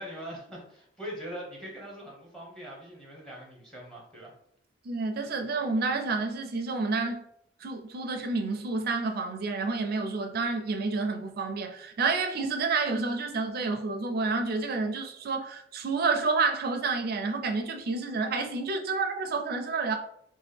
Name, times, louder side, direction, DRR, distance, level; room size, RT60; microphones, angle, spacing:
voice 1, 0.0-4.3, equal, 5° left, 0.8 m, -42 dB
voice 2, 4.8-7.2 7.6-20.0, right 4 dB, 55° right, 0.4 m, -29 dB
2.9 x 2.1 x 3.3 m
head